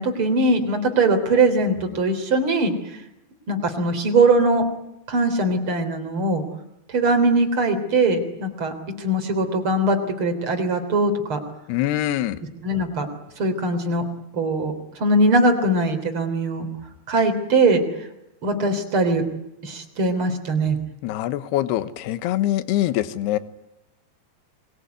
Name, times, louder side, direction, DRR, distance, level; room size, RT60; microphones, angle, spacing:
voice 1, 0.0-2.7 3.5-4.7 5.1-6.4 6.9-8.7 9.0-11.4 12.6-13.1 13.4-14.0 14.3-14.7 15.0-16.7 17.1-17.8 18.4-19.2 19.6-20.8, right 2 dB, 30° right, 5 dB, 4.0 m, -21 dB
voice 2, 11.7-12.4 21.0-23.4, left 14 dB, 75° left, 13 dB, 3.1 m, -24 dB
27.0 x 22.0 x 9.6 m, 0.89 s
omnidirectional pair, 5.0 m